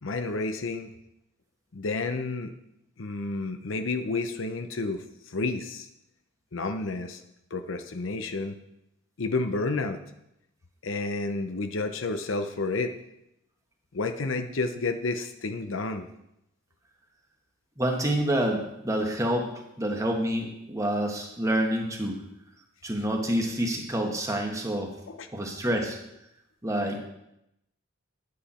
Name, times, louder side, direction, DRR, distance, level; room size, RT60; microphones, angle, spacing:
voice 1, 0.0-0.9 1.7-2.5 3.0-5.0 5.3-5.9 6.5-7.2 7.5-8.6 9.2-10.0 10.8-12.9 13.9-16.1 25.1-25.3, left 3 dB, 70° left, 8 dB, 0.7 m, -30 dB
voice 2, 17.8-19.5 19.8-22.2 22.8-24.9 25.3-26.0 26.6-27.0, right 1 dB, 15° right, 2 dB, 1.3 m, -27 dB
10.5 x 8.4 x 4.3 m, 0.85 s
head